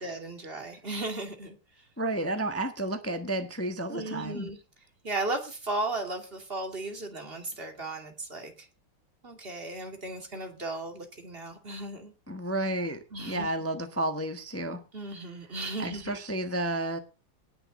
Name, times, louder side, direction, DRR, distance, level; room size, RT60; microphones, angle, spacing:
voice 1, 0.0-1.8 3.9-4.6 5.0-8.7 9.2-12.1 13.1-13.5 14.9-16.2, right 2 dB, 25° right, 2.7 m, -36 dB
voice 2, 2.0-4.5 12.3-14.8 15.8-17.0, right 1 dB, 10° left, 0.8 m, -31 dB
18.5 x 6.9 x 5.3 m
omnidirectional pair, 2.4 m